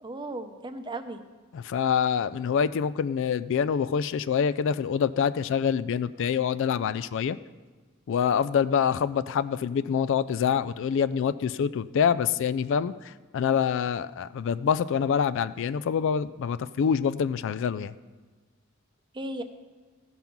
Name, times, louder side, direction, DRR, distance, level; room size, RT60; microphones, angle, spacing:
voice 1, 0.0-1.2 19.1-19.4, right 2 dB, 20° right, 8 dB, 0.7 m, -36 dB
voice 2, 1.5-7.4 8.1-17.9, left 7 dB, 60° left, 16 dB, 0.3 m, -26 dB
14.5 x 5.4 x 5.9 m, 1.4 s
head